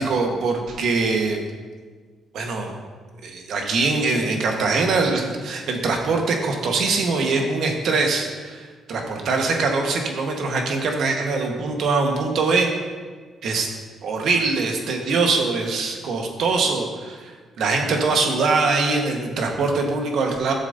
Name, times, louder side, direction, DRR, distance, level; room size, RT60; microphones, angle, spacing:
voice 1, 0.0-1.4 2.3-2.7 3.2-12.7 13.4-13.7 14.0-20.5, right 3 dB, 70° right, 2 dB, 1.4 m, -23 dB
12.5 x 7.2 x 2.7 m, 1.5 s
cardioid pair, 90°, 0 cm